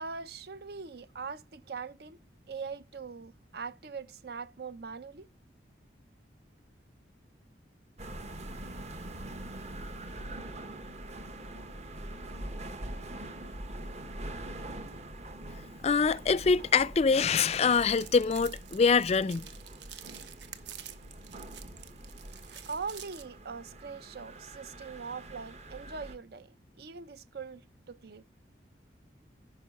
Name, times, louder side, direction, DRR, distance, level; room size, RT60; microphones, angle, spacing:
voice 1, 0.0-2.2 2.5-5.3 22.7-28.2, right 5 dB, 60° right, 0.6 m, -41 dB
sound 1, 8.0-26.2, right 1 dB, 40° right, 1.1 m, -44 dB
voice 2, 15.8-19.5, left 5 dB, 35° left, 0.4 m, -24 dB
sound 2, 17.6-23.2, right 9 dB, 75° right, 0.9 m, -49 dB
11.0 x 5.4 x 5.2 m
head